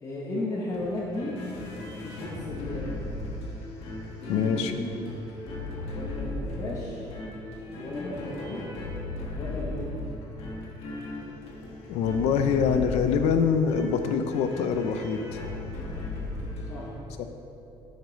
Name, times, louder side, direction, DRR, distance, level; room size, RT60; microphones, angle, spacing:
voice 1, 0.0-1.3 2.0-2.9 4.2-4.9 5.9-7.1 7.8-8.6 9.3-9.9 16.7-16.9, left 1 dB, 30° left, -4 dB, 1.0 m, -35 dB
sound 1, 0.7-16.9, left 2 dB, 65° left, 1.5 m, -37 dB
voice 2, 4.3-4.7 11.9-15.4 17.2-17.3, left 6 dB, 85° left, 8 dB, 0.6 m, -25 dB
12.0 x 5.3 x 4.0 m, 2.9 s
cardioid pair, 180°, 11 cm